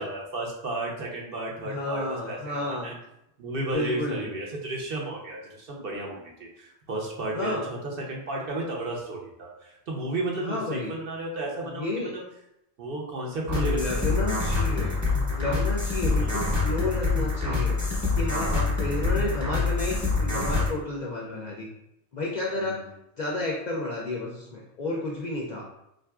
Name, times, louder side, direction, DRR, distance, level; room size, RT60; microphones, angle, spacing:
voice 1, 0.0-2.9 3.4-7.8 8.1-12.2 12.8-14.2 16.0-16.4 22.6-22.8, right 2 dB, 60° right, -2 dB, 0.8 m, -33 dB
voice 2, 1.6-3.0 3.6-4.3 7.3-7.7 10.4-10.9 11.6-12.1 13.5-15.0 15.4-21.7 22.1-25.6, left 2 dB, 55° left, -2 dB, 0.5 m, -31 dB
sound 1, 13.5-20.7, left 3 dB, 20° right, 0.8 m, -26 dB
3.7 x 2.5 x 2.3 m, 0.82 s
omnidirectional pair, 1.1 m